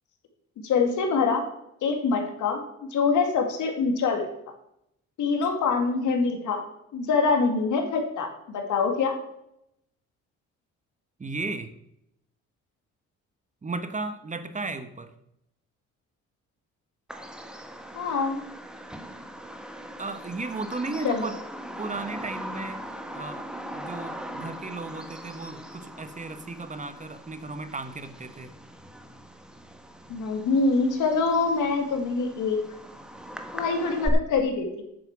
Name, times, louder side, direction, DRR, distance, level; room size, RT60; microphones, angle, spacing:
voice 1, 0.6-1.4 1.8-2.6 2.9-4.2 5.2-6.6 6.9-9.1 17.9-18.4 21.0-21.2 30.1-32.6 33.5-34.8, left 4 dB, 75° left, 5 dB, 2.4 m, -24 dB
voice 2, 11.2-11.7 13.6-15.1 20.0-21.4 21.8-22.8 23.1-23.5 23.7-28.5, right 3 dB, 25° right, 10 dB, 1.2 m, -35 dB
Bird vocalization bird call bird song, 17.1-34.1, equal, 5° right, 1.4 m, -40 dB
8.7 x 7.7 x 7.4 m, 0.80 s
cardioid pair, 90°, 30 cm